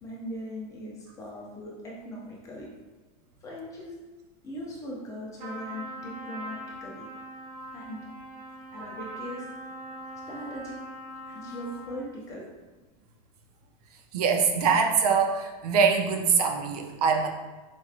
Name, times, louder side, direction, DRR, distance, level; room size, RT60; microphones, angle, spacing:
voice 1, 0.0-2.7 3.4-3.9 4.4-7.0 7.7-8.0 8.7-9.5 10.3-10.8 11.3-12.5, equal, 15° left, -3 dB, 0.7 m, -39 dB
Trumpet, 5.4-12.1, right 1 dB, 65° right, 1.5 m, -41 dB
voice 2, 14.1-17.3, right 5 dB, 85° right, 3 dB, 0.6 m, -23 dB
4.4 x 2.9 x 2.4 m, 1.3 s
supercardioid pair, 160°, 19 cm